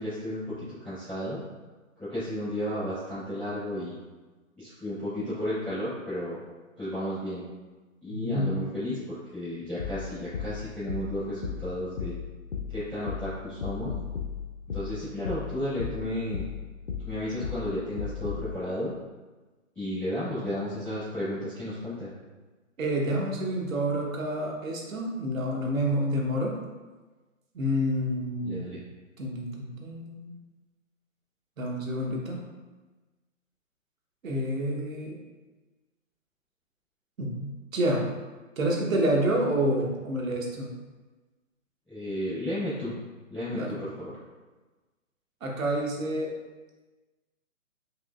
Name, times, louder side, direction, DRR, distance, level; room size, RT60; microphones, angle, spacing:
voice 1, 0.0-1.4 2.0-4.0 4.6-6.4 6.8-7.4 8.0-12.2 12.7-13.9 14.7-16.5 17.0-18.9 19.7-22.1 28.4-28.8 41.9-42.9 43.3-44.1, left 1 dB, ahead, -22 dB, 0.5 m, -33 dB
voice 2, 8.1-8.5 22.8-26.5 27.5-28.6 29.2-30.3 31.6-32.4 34.2-35.2 37.2-38.1 38.6-40.7 43.5-43.8 45.4-46.3, equal, 80° right, -1 dB, 1.1 m, -28 dB
sound 1, 9.8-18.5, left 7 dB, 55° left, 0.6 m, -36 dB
4.8 x 3.0 x 2.4 m, 1.2 s
hypercardioid pair, 160°, 40 cm